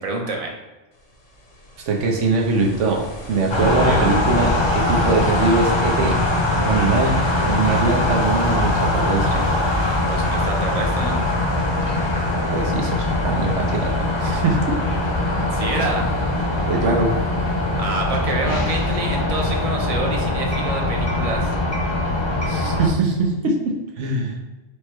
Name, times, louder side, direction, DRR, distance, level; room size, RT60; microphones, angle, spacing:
voice 1, 0.0-0.5 3.7-4.0 10.1-11.2 15.5-16.1 17.7-21.5, right 2 dB, 35° right, 0 dB, 0.6 m, -27 dB
Ocean, 0.9-18.3, equal, 75° left, 1.2 m, -39 dB
voice 2, 1.9-6.2 6.6-9.4 12.5-14.8 15.3-15.5 16.7-17.1 22.5-24.3, right 3 dB, 75° right, 1 dB, 1.1 m, -22 dB
sound 1, 3.5-22.9, left 1 dB, 40° left, 0.4 m, -22 dB
4.9 x 2.2 x 4.5 m, 1.1 s
omnidirectional pair, 1.3 m